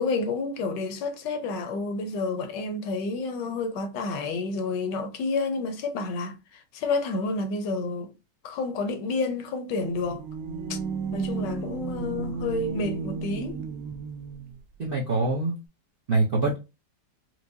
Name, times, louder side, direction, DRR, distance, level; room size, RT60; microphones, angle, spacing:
voice 1, 0.0-8.1 8.4-10.2 10.7-10.8 11.1-13.6, left 3 dB, 75° left, 1.2 m, -30 dB
sound 1, 9.8-14.6, right 5 dB, 70° right, 1.0 m, -33 dB
voice 2, 14.8-15.6 16.1-16.6, right 2 dB, 55° right, 0.6 m, -24 dB
4.6 x 2.1 x 2.6 m
omnidirectional pair, 2.0 m